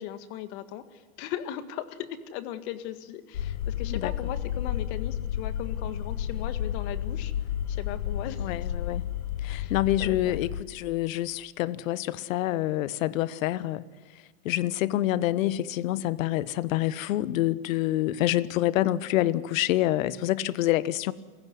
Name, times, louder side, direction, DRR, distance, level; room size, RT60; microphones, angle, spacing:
voice 1, 0.0-7.3 7.7-8.5 9.5-9.7 10.0-10.4, left 11 dB, 50° left, 10 dB, 1.9 m, -38 dB
sound 1, 3.3-10.6, left 10 dB, 90° left, 1.4 m, -31 dB
voice 2, 8.4-9.1 9.4-13.8 14.4-21.1, left 14 dB, 70° left, 17 dB, 1.1 m, -27 dB
28.0 x 16.0 x 9.6 m, 1.4 s
supercardioid pair, 145°, 43 cm